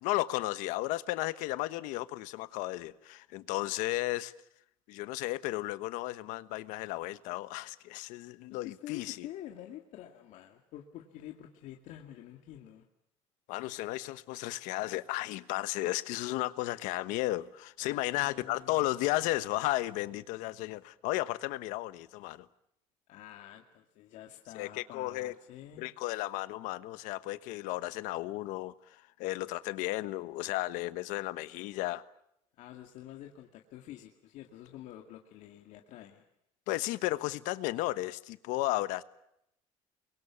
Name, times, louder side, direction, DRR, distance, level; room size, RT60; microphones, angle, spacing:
voice 1, 0.0-4.3 4.9-9.3 13.5-22.5 24.5-25.3 25.8-32.0 36.7-39.0, left 18 dB, 90° left, 1.3 m, -34 dB
voice 2, 8.5-12.9 17.8-18.9 23.1-25.9 32.6-36.2, left 12 dB, 65° left, 2.2 m, -48 dB
30.0 x 23.0 x 7.1 m
cardioid pair, 150°, 13 cm